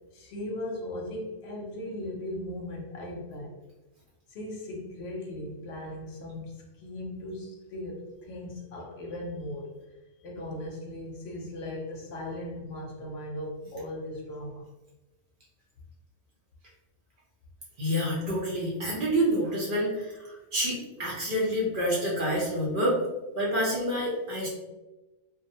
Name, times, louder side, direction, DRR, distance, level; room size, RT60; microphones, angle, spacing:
voice 1, 0.1-3.5 4.3-9.7 10.2-14.6, left 1 dB, 65° left, -1 dB, 0.8 m, -38 dB
voice 2, 17.8-23.0 23.4-24.5, equal, 55° right, -5 dB, 0.7 m, -28 dB
2.4 x 2.0 x 2.6 m, 1.1 s
omnidirectional pair, 1.2 m